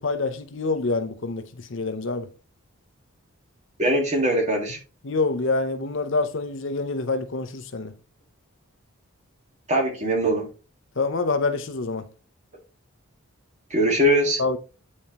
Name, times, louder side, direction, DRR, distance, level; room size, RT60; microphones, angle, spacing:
voice 1, 0.0-2.3 5.0-7.9 11.0-12.1 14.4-14.6, left 3 dB, 55° left, 0.7 m, -26 dB
voice 2, 3.8-4.8 9.7-10.5 13.7-14.4, right 1 dB, 30° right, 1.7 m, -21 dB
9.1 x 4.3 x 2.9 m
head